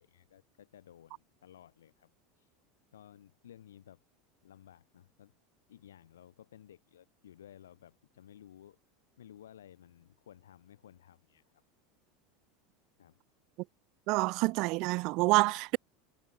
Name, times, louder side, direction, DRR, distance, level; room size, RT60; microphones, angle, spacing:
voice 1, 0.0-2.1 2.4-2.5 2.9-4.0 4.4-5.3 5.7-8.8 9.2-11.6 13.0-13.2, left 10 dB, 75° left, 7.2 m, -56 dB
voice 2, 14.1-15.8, right 24 dB, 55° right, 1.3 m, -27 dB
figure-of-eight pair, 75°, 0 cm